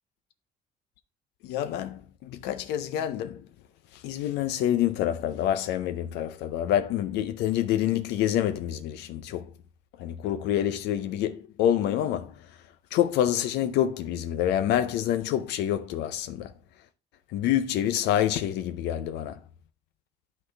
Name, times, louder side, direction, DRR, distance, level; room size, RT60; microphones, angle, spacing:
voice 1, 1.4-3.4 3.9-9.5 10.0-12.3 12.9-16.5 17.3-19.4, left 11 dB, 85° left, 0.6 m, -27 dB
11.5 x 4.0 x 3.2 m
cardioid pair, 110°, 17 cm